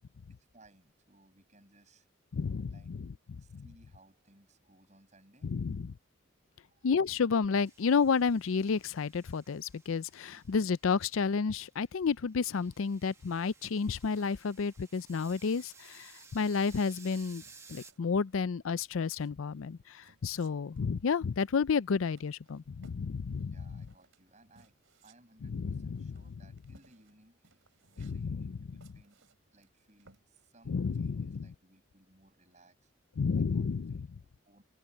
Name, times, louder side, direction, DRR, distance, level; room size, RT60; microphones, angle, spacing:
voice 1, 0.4-2.1 2.6-2.9 3.4-5.5 6.5-6.9 10.3-10.6 23.4-24.8 25.0-27.7 28.0-29.2 29.5-32.9 33.4-34.6, right 1 dB, 35° right, 6.5 m, -63 dB
voice 2, 2.3-3.0 3.5-3.6 5.4-5.9 6.8-17.4 17.7-23.8 25.4-26.1 28.0-28.4 30.7-31.5 33.2-34.1, left 5 dB, 75° left, 0.5 m, -31 dB
sound 1, 7.6-11.7 12.1-17.9, right 4 dB, 15° right, 1.0 m, -57 dB
sound 2, 13.1-30.6, right 3 dB, 75° right, 3.1 m, -65 dB
head